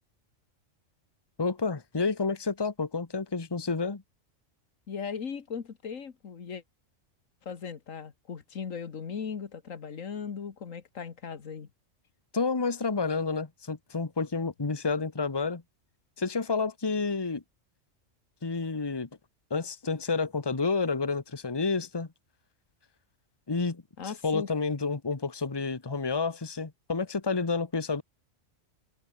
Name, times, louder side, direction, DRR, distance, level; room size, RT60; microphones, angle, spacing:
voice 1, 1.4-4.0 12.3-15.6 16.2-17.4 18.4-19.1 19.5-22.1 23.5-23.8 24.2-28.0, left 4 dB, 20° left, 1.2 m, -29 dB
voice 2, 4.9-6.6 7.4-11.7 24.0-24.5, left 6 dB, 85° left, 1.9 m, -38 dB
omnidirectional pair, 1.3 m